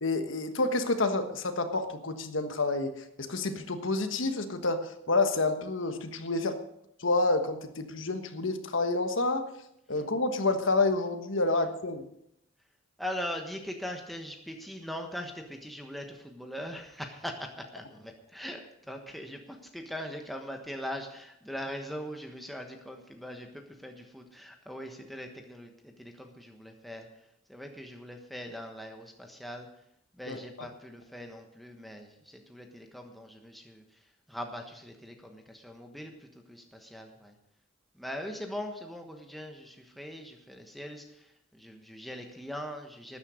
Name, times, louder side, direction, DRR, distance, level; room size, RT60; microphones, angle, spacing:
voice 1, 0.0-2.9 3.2-6.6 7.0-9.5 9.9-12.0 30.3-30.4, left 3 dB, 70° left, 8 dB, 1.4 m, -28 dB
voice 2, 13.0-27.1 27.5-29.7 30.1-37.3 37.9-43.2, equal, ahead, 3 dB, 1.2 m, -41 dB
13.0 x 9.9 x 6.4 m, 0.77 s
head